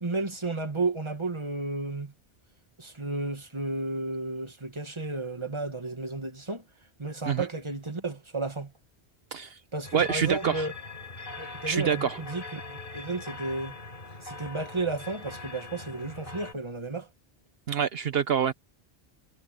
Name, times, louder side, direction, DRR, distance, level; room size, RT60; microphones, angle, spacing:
voice 1, 0.0-2.1 2.8-6.6 7.0-8.7 9.7-10.7 11.4-13.8 14.2-17.1, right 3 dB, 25° right, 1.9 m, -33 dB
sound 1, 9.8-16.5, left 3 dB, 55° left, 4.6 m, -42 dB
voice 2, 9.9-10.7 11.7-12.2 17.7-18.5, right 8 dB, 70° right, 1.1 m, -26 dB
omnidirectional pair, 1.1 m